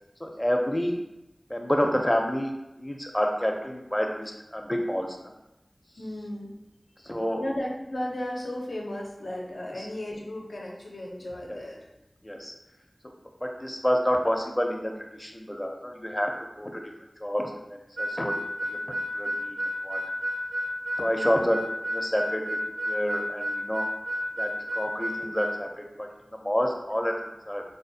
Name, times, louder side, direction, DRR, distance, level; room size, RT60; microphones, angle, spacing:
voice 1, 0.2-1.0 1.5-5.3 7.0-7.4 9.8-9.9 11.5-11.6 12.2-12.5 13.4-16.8 17.2-18.3 18.6-18.8 19.1-19.6 19.8-20.0 21.0-21.6 21.9-22.6 22.9-23.9 24.4-27.1 27.5-27.6, equal, 20° left, 2 dB, 0.5 m, -29 dB
voice 2, 6.0-6.5 7.0-7.1 7.4-11.9 21.1-21.5, left 1 dB, 90° left, -1 dB, 0.6 m, -35 dB
Harmonica, 18.0-25.6, equal, 80° right, 0.8 m, -31 dB
4.1 x 2.3 x 2.6 m, 0.92 s
wide cardioid pair, 60°, 0 cm